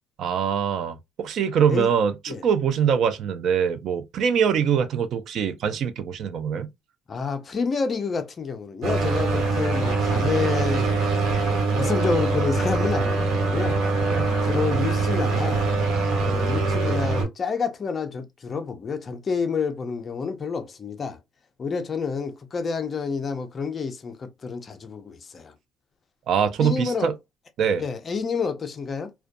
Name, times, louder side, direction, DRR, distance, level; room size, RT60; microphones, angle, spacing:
voice 1, 0.2-6.7 14.1-14.3 26.3-27.1 27.6-27.8, right 7 dB, 50° right, 0.3 m, -23 dB
voice 2, 7.1-10.9 11.7-13.8 14.4-15.6 16.2-21.2 21.6-25.5 26.6-27.1 27.8-29.1, left 5 dB, 25° left, 0.4 m, -29 dB
sound 1, 8.8-17.2, right 3 dB, 65° right, 1.1 m, -23 dB
2.4 x 2.2 x 2.5 m
cardioid pair, 160°, 0 cm